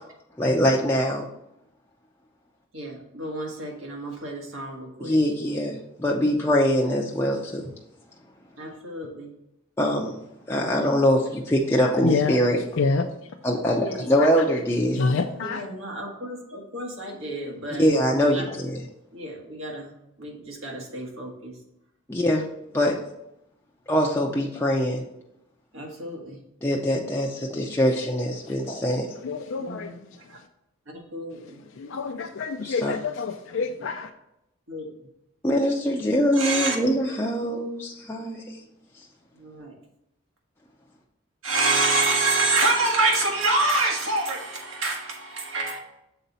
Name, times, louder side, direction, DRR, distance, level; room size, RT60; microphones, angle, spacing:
voice 1, 0.4-1.3 5.0-7.7 9.8-10.1 10.5-12.6 13.4-15.0 17.8-18.8 22.1-22.4 22.7-23.0 23.9-25.0 26.6-29.1 32.6-32.9 35.4-38.5, equal, 10° left, -2 dB, 0.5 m, -23 dB
voice 2, 2.7-5.2 8.6-9.3 13.7-14.0 15.5-18.5 19.1-19.9 20.2-21.5 25.7-26.4 29.6-30.0 30.3-30.4 30.9-31.6 34.7-34.9 36.3-36.8 39.4-39.7 41.4-45.8, right 2 dB, 75° right, 0 dB, 1.6 m, -27 dB
voice 3, 12.0-12.4 12.8-13.1 13.8-14.5 14.9-15.7 28.0-28.1 29.2-30.2 31.5-34.1, left 4 dB, 65° left, 5 dB, 0.4 m, -27 dB
6.8 x 4.1 x 4.0 m, 0.83 s
head